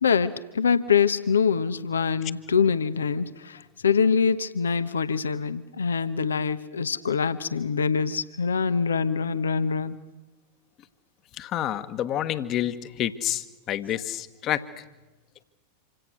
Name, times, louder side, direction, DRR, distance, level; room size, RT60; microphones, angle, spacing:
voice 1, 0.0-10.0, left 6 dB, 70° left, 13 dB, 1.0 m, -24 dB
voice 2, 11.4-14.8, left 12 dB, 35° left, 12 dB, 1.4 m, -29 dB
27.5 x 25.5 x 6.3 m, 1.1 s
figure-of-eight pair, 90°, 0 cm